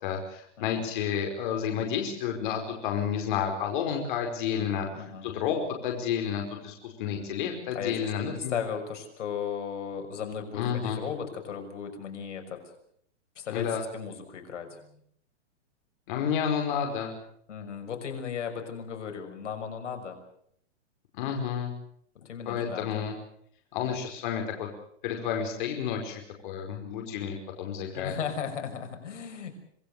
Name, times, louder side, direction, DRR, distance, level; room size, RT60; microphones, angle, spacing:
voice 1, 0.0-8.6 10.5-11.0 13.5-13.8 16.1-17.1 21.1-21.7 22.5-23.1 23.7-24.7 25.0-28.2, left 8 dB, 45° left, 2 dB, 5.0 m, -31 dB
voice 2, 4.5-5.3 7.7-12.6 13.4-13.7 13.9-14.8 17.5-20.2 22.1-23.1 27.9-29.5, left 7 dB, 80° left, 5 dB, 6.3 m, -36 dB
26.5 x 20.0 x 6.8 m, 0.68 s
hypercardioid pair, 165°, 36 cm